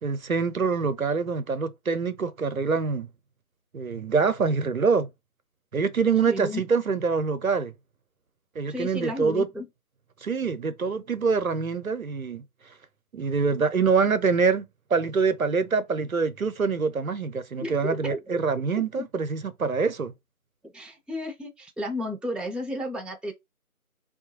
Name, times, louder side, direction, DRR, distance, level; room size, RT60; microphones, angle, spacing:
voice 1, 0.0-3.1 3.7-5.1 5.7-7.7 8.6-9.5 10.2-12.4 13.1-14.7 14.9-20.1, right 5 dB, 65° right, 0.5 m, -25 dB
voice 2, 6.3-6.6 8.7-9.7 17.6-18.4 20.7-23.3, left 1 dB, ahead, 0.3 m, -33 dB
3.0 x 2.2 x 2.9 m
figure-of-eight pair, 175°, 44 cm